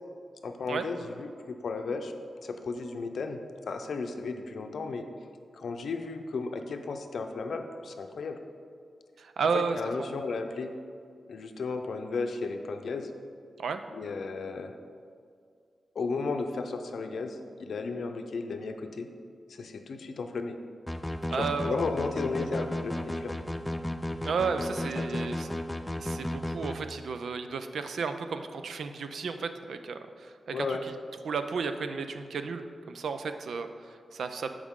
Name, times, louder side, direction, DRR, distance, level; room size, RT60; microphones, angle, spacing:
voice 1, 0.4-2.1 2.4-5.1 5.5-8.4 9.5-10.7 11.3-13.1 13.9-14.7 15.9-19.1 19.5-20.6 21.3-23.4 25.0-25.5 30.5-30.8, left 4 dB, 70° left, 6 dB, 0.6 m, -34 dB
voice 2, 9.2-10.1 13.6-13.8 21.3-21.8 24.2-25.5 26.0-30.8 31.2-34.6, right 5 dB, 90° right, 8 dB, 0.5 m, -33 dB
sound 1, 20.9-26.8, left 1 dB, 10° left, 0.4 m, -33 dB
13.5 x 5.0 x 3.7 m, 2.3 s
wide cardioid pair, 140°, 0 cm